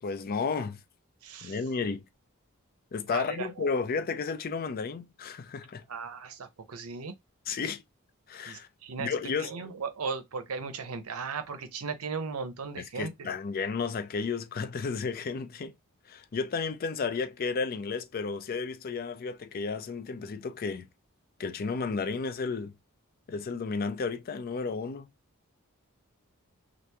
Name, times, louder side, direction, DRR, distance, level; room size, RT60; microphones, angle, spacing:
voice 1, 0.0-0.8 1.4-2.0 2.9-5.8 7.5-7.8 8.3-8.7 9.0-9.5 13.0-15.7 16.1-20.9 21.4-22.7 23.3-25.1, left 5 dB, 45° left, 0.4 m, -32 dB
voice 2, 1.2-1.6 3.1-3.7 5.9-7.1 8.5-9.1 9.4-13.3, right 4 dB, 90° right, 0.7 m, -37 dB
3.0 x 2.5 x 3.4 m
head